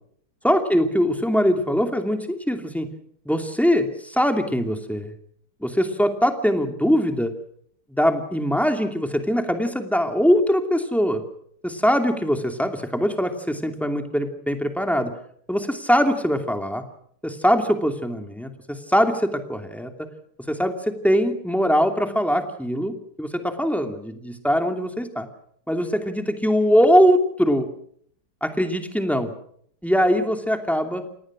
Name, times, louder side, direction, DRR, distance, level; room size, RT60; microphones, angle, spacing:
voice 1, 0.4-2.9 3.3-5.1 5.6-7.3 7.9-11.2 11.6-15.1 15.5-16.8 17.2-18.5 18.9-19.9 20.5-25.3 25.7-27.7 28.4-29.3 29.8-31.0, equal, ahead, 5 dB, 2.5 m, -22 dB
28.0 x 19.5 x 6.3 m, 0.65 s
omnidirectional pair, 2.4 m